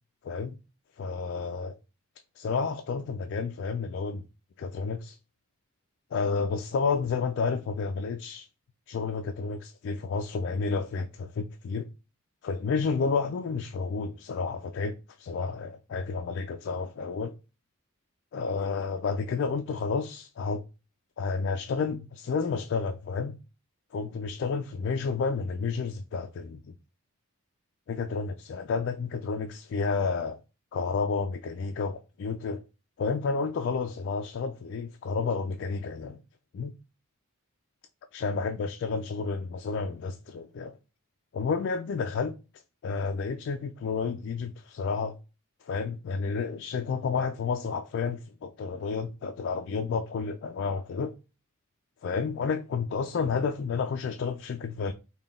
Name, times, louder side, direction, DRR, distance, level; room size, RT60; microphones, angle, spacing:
voice 1, 0.2-0.6 1.0-1.8 2.4-4.2 4.6-5.2 6.1-8.5 8.9-11.9 12.4-17.4 18.3-20.6 21.2-23.4 23.9-26.7 27.9-30.4 30.7-32.6 33.0-36.2 36.5-36.7 38.1-40.8 41.3-42.4 42.8-45.2 45.6-51.1 52.0-54.9, left 5 dB, 55° left, 0.3 m, -31 dB
3.7 x 2.2 x 3.5 m
head